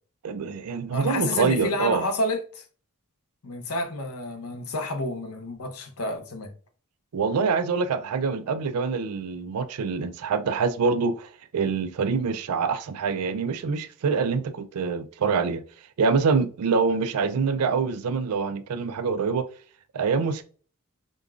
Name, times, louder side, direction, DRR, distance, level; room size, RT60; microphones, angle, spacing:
voice 1, 0.2-2.0 7.1-15.6 16.0-19.4 19.9-20.4, right 5 dB, 90° right, 0.4 m, -25 dB
voice 2, 0.9-2.6 3.4-6.5, left 2 dB, 75° left, 0.7 m, -30 dB
5.1 x 2.2 x 2.4 m
head